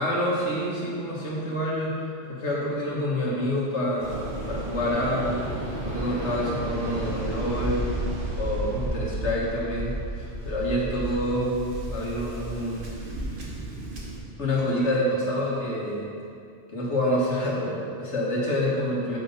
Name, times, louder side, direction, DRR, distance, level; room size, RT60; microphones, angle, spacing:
voice 1, 0.0-2.0 2.2-5.5 5.8-7.8 8.4-11.6 11.9-12.9 14.4-16.1 16.7-19.2, equal, 80° left, -4 dB, 1.7 m, -27 dB
Waves surf, 4.0-14.2, right 1 dB, 50° right, 1.3 m, -32 dB
8.1 x 4.1 x 5.3 m, 2.4 s
omnidirectional pair, 1.2 m